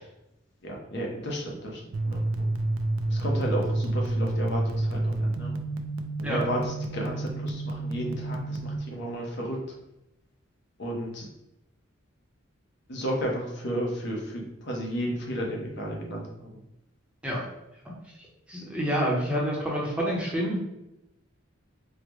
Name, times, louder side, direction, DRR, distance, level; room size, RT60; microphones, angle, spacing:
voice 1, 0.6-2.5 3.1-5.5 6.2-9.6 10.8-11.3 12.9-16.6, equal, 55° left, -1 dB, 0.8 m, -33 dB
sound 1, 1.9-8.8, right 2 dB, 75° right, 0.3 m, -29 dB
voice 2, 18.5-20.6, equal, 5° right, -5 dB, 0.7 m, -27 dB
3.7 x 2.1 x 3.1 m, 0.88 s
head